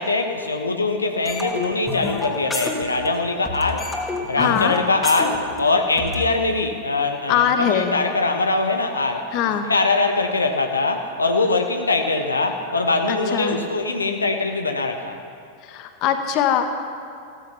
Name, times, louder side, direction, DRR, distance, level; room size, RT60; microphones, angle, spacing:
voice 1, 0.0-3.9 4.3-9.3 9.7-15.2, left 3 dB, 80° left, 4 dB, 1.2 m, -22 dB
sound 1, 1.2-3.2 3.4-6.2, left 3 dB, 15° left, 2.4 m, -28 dB
voice 2, 4.4-4.7 7.3-8.1 9.3-9.7 13.1-13.6 15.6-16.6, left 9 dB, 40° left, 7 dB, 1.3 m, -21 dB
16.0 x 14.0 x 5.8 m, 2.4 s
figure-of-eight pair, 90°, 0 cm